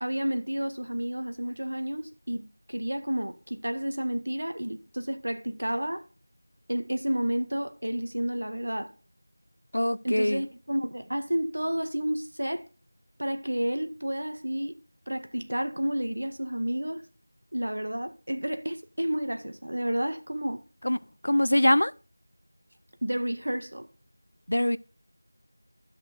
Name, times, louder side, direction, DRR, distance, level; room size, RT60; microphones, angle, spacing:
voice 1, 0.0-6.0 6.7-8.9 10.0-12.6 13.2-14.7 15.1-17.0 17.5-20.6 23.0-23.9, equal, 80° right, 1.6 m, -31 dB
voice 2, 9.7-10.4 20.8-21.9 24.5-24.8, left 1 dB, 75° left, 0.6 m, -23 dB
11.5 x 6.2 x 4.1 m
figure-of-eight pair, 180°, 0 cm